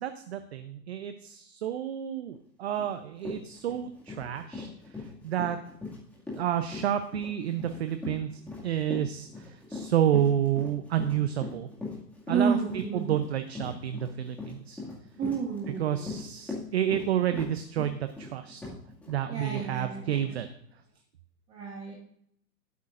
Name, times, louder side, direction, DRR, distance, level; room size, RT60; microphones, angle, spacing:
voice 1, 0.0-4.7 5.2-5.6 6.3-11.7 12.3-14.8 15.8-18.6 19.1-20.5, right 10 dB, 40° right, 9 dB, 0.7 m, -30 dB
Run, 2.8-2.9 3.2-19.2 19.5-19.7 20.1-20.3, left 3 dB, 5° left, 2.0 m, -40 dB
voice 2, 12.3-13.1 15.2-16.0 19.3-20.0 21.5-21.9, right 6 dB, 15° right, -2 dB, 1.1 m, -30 dB
15.0 x 8.4 x 2.5 m, 0.69 s
hypercardioid pair, 160°, 49 cm